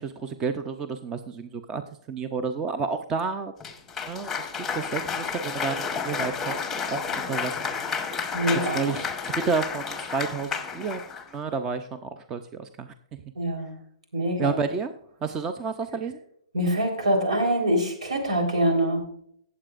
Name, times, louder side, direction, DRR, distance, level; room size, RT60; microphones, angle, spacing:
voice 1, 0.0-1.8 2.1-3.5 4.1-7.6 8.7-13.2 14.4-14.9 15.2-16.2, right 5 dB, 15° right, 9 dB, 0.5 m, -31 dB
Cheering / Applause, 3.6-11.3, left 5 dB, 5° left, 0.9 m, -31 dB
voice 2, 8.3-8.8 13.4-13.8 14.1-14.6 16.5-19.1, right 1 dB, 85° right, 4 dB, 3.8 m, -24 dB
18.0 x 7.6 x 2.5 m, 0.67 s
hypercardioid pair, 165°, 3 cm